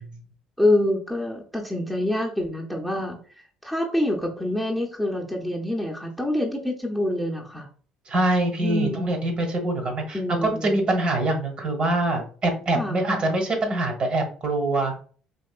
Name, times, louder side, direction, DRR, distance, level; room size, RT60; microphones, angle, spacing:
voice 1, 0.6-3.2 3.6-7.7 8.6-9.1 10.1-10.7 12.7-13.0, left 1 dB, ahead, -1 dB, 0.8 m, -26 dB
voice 2, 8.1-14.9, right 2 dB, 45° right, 4 dB, 1.2 m, -24 dB
4.4 x 2.9 x 2.4 m, 0.42 s
supercardioid pair, 75°, 2 cm